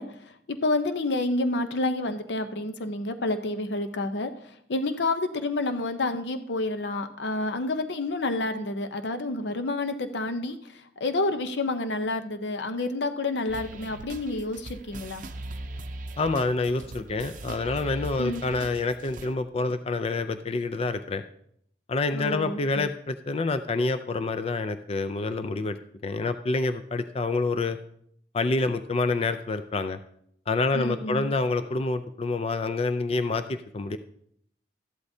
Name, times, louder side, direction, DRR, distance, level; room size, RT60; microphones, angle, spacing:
voice 1, 0.0-15.2 18.2-18.4 22.1-22.9 30.7-31.3, left 2 dB, 75° left, 9 dB, 0.7 m, -29 dB
sound 1, 13.5-19.3, right 2 dB, 50° right, 0.6 m, -40 dB
voice 2, 16.2-21.2 21.9-27.8 28.3-30.0 30.5-34.0, left 3 dB, 35° left, 10 dB, 0.4 m, -27 dB
13.5 x 11.5 x 2.7 m, 0.69 s
head